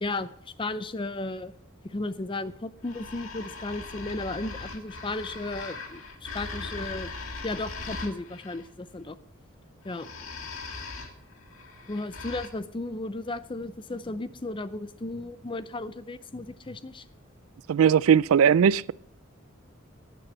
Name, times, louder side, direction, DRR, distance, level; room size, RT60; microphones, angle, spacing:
voice 1, 0.0-1.6 1.8-7.1 7.4-9.2 9.8-10.1 11.9-17.0, left 2 dB, 25° left, 0.5 m, -34 dB
sound 1, 2.8-8.6 9.8-12.5, left 3 dB, 90° left, 1.8 m, -40 dB
voice 2, 17.7-18.9, right 7 dB, 85° right, 0.3 m, -19 dB
15.5 x 9.2 x 4.3 m
head